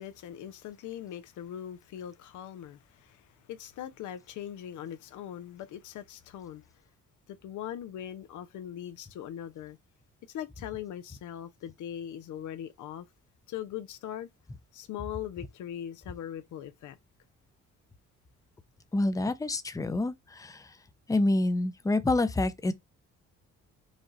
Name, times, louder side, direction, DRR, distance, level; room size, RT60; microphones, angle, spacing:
voice 1, 0.0-6.7 7.3-9.8 10.3-13.1 13.5-14.3 14.7-17.0, left 10 dB, 75° left, 0.7 m, -40 dB
voice 2, 18.9-20.7 21.1-22.7, left 2 dB, 10° left, 0.6 m, -27 dB
5.0 x 2.4 x 4.0 m
cardioid pair, 90°, 30 cm